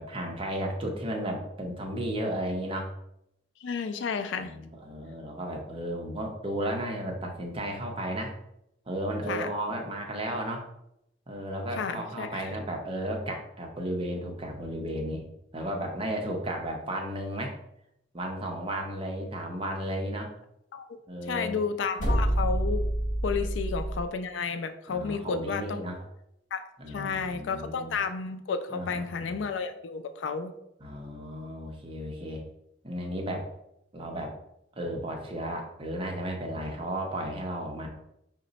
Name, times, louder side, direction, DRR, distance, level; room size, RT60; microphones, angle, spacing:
voice 1, 0.0-2.9 4.4-8.3 8.9-10.6 11.3-17.6 18.1-20.3 21.1-21.6 23.3-23.4 24.9-26.0 26.8-28.0 28.7-29.4 30.8-32.4 32.8-33.5 33.9-34.3 34.8-37.9, right 1 dB, 30° right, 2 dB, 0.7 m, -34 dB
voice 2, 3.6-4.5 9.3-9.5 11.8-12.5 20.7-20.9 21.3-22.8 23.2-25.8 26.5-30.5, left 5 dB, 70° left, 9 dB, 0.4 m, -32 dB
sound 1, 22.0-24.1, right 1 dB, 45° left, 1.6 m, -27 dB
4.9 x 2.1 x 3.9 m, 0.80 s
head